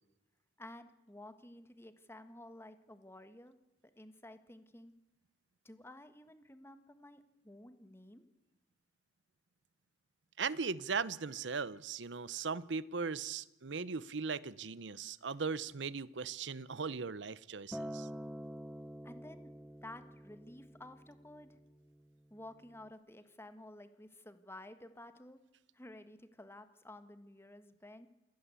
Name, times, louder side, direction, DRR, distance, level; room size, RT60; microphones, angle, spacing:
voice 1, 0.6-3.6 3.9-4.9 5.6-8.2 19.0-19.5 19.8-21.6 22.3-25.4 25.7-28.1, left 1 dB, 15° left, 1.6 m, -53 dB
voice 2, 10.4-18.1, right 5 dB, 70° right, 0.8 m, -38 dB
Acoustic guitar, 17.7-22.0 22.8-22.9, equal, ahead, 0.8 m, -47 dB
27.5 x 16.0 x 8.4 m
head